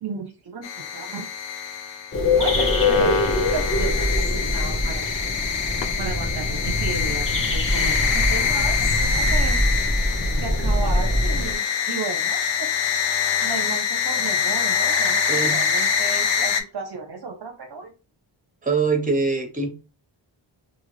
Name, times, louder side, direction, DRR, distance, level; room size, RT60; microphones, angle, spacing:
voice 1, 0.0-1.3 2.4-3.2 3.5-5.2 6.0-9.6 10.4-12.8 13.4-17.9, right 5 dB, 55° right, 0.7 m, -34 dB
sound 1, 0.6-16.6, left 7 dB, 65° left, 0.6 m, -25 dB
sound 2, 2.1-11.5, left 1 dB, 25° left, 0.9 m, -23 dB
voice 2, 15.3-15.6 18.6-19.7, right 4 dB, 15° right, 1.0 m, -23 dB
2.6 x 2.4 x 3.2 m
cardioid pair, 55°, 48 cm